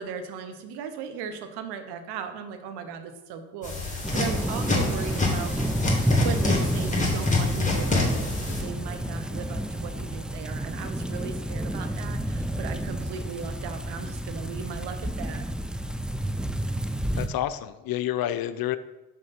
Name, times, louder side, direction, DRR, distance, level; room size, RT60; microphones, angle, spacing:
voice 1, 0.0-5.7 6.2-15.5, right 6 dB, 85° right, 8 dB, 0.8 m, -37 dB
sound 1, 3.6-8.6, left 3 dB, 20° left, 2.2 m, -27 dB
sound 2, 4.0-17.3, right 1 dB, ahead, 0.5 m, -30 dB
voice 2, 17.1-18.8, left 12 dB, 65° left, 13 dB, 0.6 m, -29 dB
5.5 x 5.2 x 5.7 m, 1.0 s
supercardioid pair, 60°, 39 cm